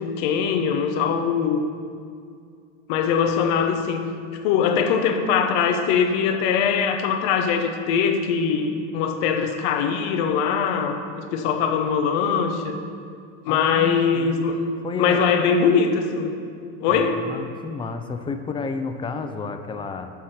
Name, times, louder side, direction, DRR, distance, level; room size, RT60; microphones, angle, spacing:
voice 1, 0.0-1.6 2.9-4.0 4.4-11.0 11.3-12.8 13.4-14.6 15.0-16.3 16.8-17.2, left 6 dB, 65° left, 6 dB, 0.9 m, -22 dB
voice 2, 13.5-14.6 14.8-15.2 16.9-20.1, left 4 dB, 15° left, 8 dB, 0.3 m, -31 dB
7.4 x 3.6 x 6.4 m, 2.3 s
hypercardioid pair, 95°, 38 cm